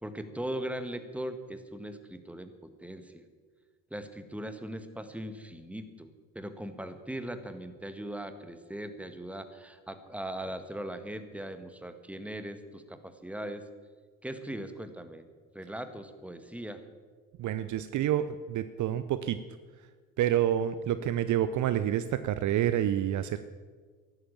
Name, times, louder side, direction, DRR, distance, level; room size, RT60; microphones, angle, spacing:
voice 1, 0.0-3.2 3.9-6.1 6.3-13.6 14.2-15.3 15.5-16.8, right 1 dB, 5° right, 9 dB, 1.6 m, -39 dB
voice 2, 17.4-19.4 20.2-23.4, right 11 dB, 45° right, 13 dB, 0.7 m, -28 dB
14.5 x 11.5 x 7.3 m, 1.5 s
figure-of-eight pair, 50°, 40 cm